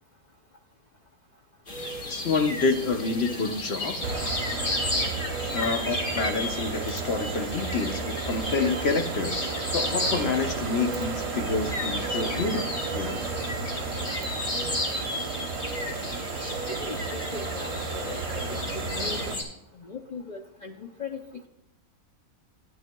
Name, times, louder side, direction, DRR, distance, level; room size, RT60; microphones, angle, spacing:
sound 1, 1.7-19.4, left 1 dB, 35° left, 1.6 m, -33 dB
voice 1, 2.1-4.0 5.5-13.3, left 4 dB, 55° left, 6 dB, 0.8 m, -28 dB
sound 2, 4.0-19.4, right 4 dB, 55° right, 1.0 m, -33 dB
voice 2, 16.7-19.4 19.8-21.2, left 4 dB, 80° left, 2 dB, 0.4 m, -39 dB
13.5 x 9.4 x 2.2 m, 0.86 s
omnidirectional pair, 1.5 m